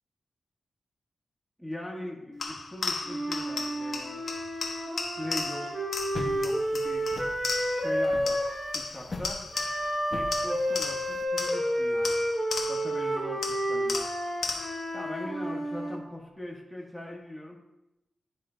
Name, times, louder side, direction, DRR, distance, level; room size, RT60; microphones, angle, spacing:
voice 1, 1.6-4.3 5.1-5.9 6.1-7.1 7.7-8.4 8.7-9.4 10.1-12.2 12.7-14.0 14.4-17.6, left 1 dB, ahead, -2 dB, 1.3 m, -40 dB
sound 1, 2.4-8.0 8.3-10.0 10.3-13.0 13.4-14.9, left 4 dB, 65° left, 1.0 m, -36 dB
Wind instrument woodwind instrument, 3.0-8.8 9.5-16.0, equal, 20° right, 2.4 m, -30 dB
sound 2, 6.1-11.2, left 2 dB, 30° left, 1.0 m, -41 dB
11.0 x 3.7 x 3.8 m, 0.91 s
wide cardioid pair, 125°, 0 cm